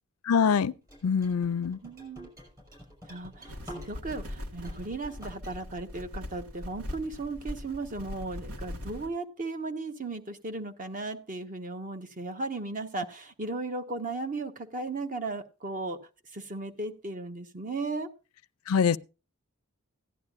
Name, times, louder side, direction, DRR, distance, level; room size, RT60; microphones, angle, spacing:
voice 1, 0.3-0.7 1.0-1.8 18.7-19.0, left 6 dB, 85° left, 0.4 m, -24 dB
sound 1, 0.9-4.2 4.5-5.5, equal, 20° right, 5.4 m, -48 dB
voice 2, 1.8-2.3 3.1-16.0 16.3-18.1, right 3 dB, 40° right, 1.2 m, -36 dB
sound 2, 3.5-9.1, left 1 dB, 90° right, 1.8 m, -41 dB
16.0 x 11.0 x 2.5 m
head